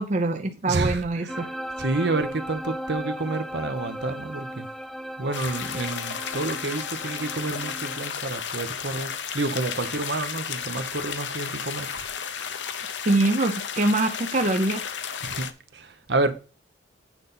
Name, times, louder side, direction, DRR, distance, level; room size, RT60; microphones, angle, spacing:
voice 1, 0.0-1.5 13.1-14.8, right 2 dB, 40° right, 0.6 m, -24 dB
voice 2, 0.7-1.5 1.8-4.7 5.2-12.1 12.4-12.5 15.2-16.3, right 2 dB, 65° right, 1.0 m, -29 dB
sound 1, 1.3-8.1, equal, ahead, 0.5 m, -36 dB
sound 2, 5.3-15.5, left 7 dB, 80° left, 0.8 m, -33 dB
9.0 x 4.1 x 5.6 m
head